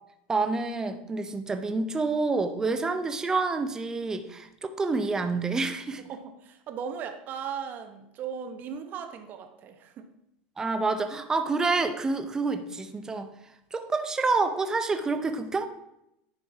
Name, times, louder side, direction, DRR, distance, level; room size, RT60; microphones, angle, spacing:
voice 1, 0.3-6.0 10.6-13.3 13.7-15.7, right 3 dB, 10° right, 8 dB, 0.6 m, -28 dB
voice 2, 6.0-10.1, right 7 dB, 30° right, 7 dB, 0.9 m, -37 dB
10.5 x 4.5 x 4.7 m, 0.83 s
supercardioid pair, 155°, 6 cm